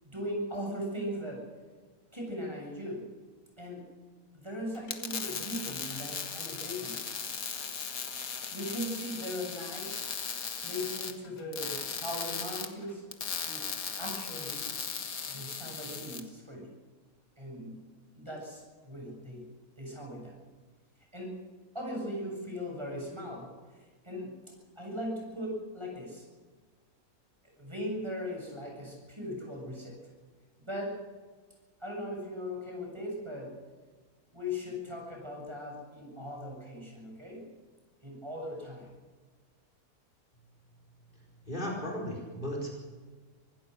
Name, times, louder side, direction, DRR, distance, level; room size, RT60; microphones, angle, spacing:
voice 1, 0.0-1.5 2.1-3.1 3.6-3.8 4.3-7.2 8.5-10.0 10.6-13.1 13.4-14.6 15.3-16.7 17.4-19.5 19.8-20.3 21.1-21.4 21.7-26.2 27.4-30.0 30.6-31.1 31.8-33.6 34.3-37.4 38.0-38.9, equal, 20° right, -1 dB, 7.4 m, -39 dB
sound 1, 4.7-16.2, left 6 dB, 75° left, 2.0 m, -37 dB
voice 2, 41.1-42.7, equal, 35° left, 0 dB, 4.9 m, -36 dB
25.5 x 16.5 x 6.5 m, 1.4 s
omnidirectional pair, 1.5 m